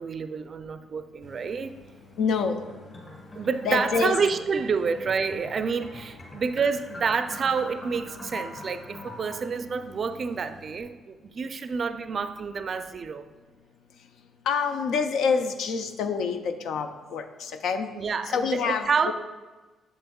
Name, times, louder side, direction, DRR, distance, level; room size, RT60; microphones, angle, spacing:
voice 1, 0.0-1.7 3.3-13.2 18.0-19.1, right 5 dB, 45° right, 10 dB, 0.4 m, -28 dB
Idling, 1.2-10.8, left 2 dB, 55° left, 1.9 m, -52 dB
voice 2, 2.2-2.7 3.6-4.2 14.5-17.9 18.3-19.1, left 5 dB, 80° left, 7 dB, 0.5 m, -27 dB
sound 1, 2.6-9.4, left 1 dB, 35° left, 2.0 m, -43 dB
7.7 x 7.7 x 2.3 m, 1.2 s
cardioid pair, 90°, 0 cm